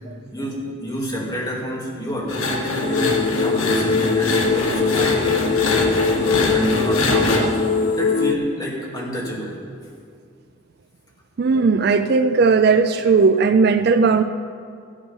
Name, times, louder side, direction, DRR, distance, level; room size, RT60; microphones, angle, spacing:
voice 1, 0.3-5.7 6.2-7.6 7.9-9.6, equal, 20° left, -4 dB, 2.2 m, -28 dB
sound 1, 2.3-7.4, left 2 dB, 85° left, 1.8 m, -24 dB
sound 2, 2.8-8.3, left 5 dB, 35° left, 0.4 m, -21 dB
voice 2, 11.4-14.2, right 4 dB, 50° right, 10 dB, 0.4 m, -16 dB
13.5 x 9.0 x 5.5 m, 2.3 s
head